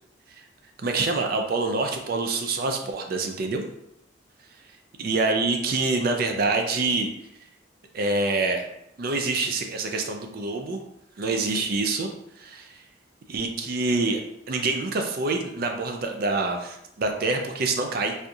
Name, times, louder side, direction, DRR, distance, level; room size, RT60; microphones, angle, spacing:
voice 1, 0.8-3.6 5.0-7.1 7.9-8.7 9.0-10.8 11.2-12.1 12.4-12.7 13.3-14.2 14.5-18.1, right 3 dB, 50° right, 4 dB, 0.4 m, -26 dB
4.3 x 2.6 x 2.4 m, 0.79 s
head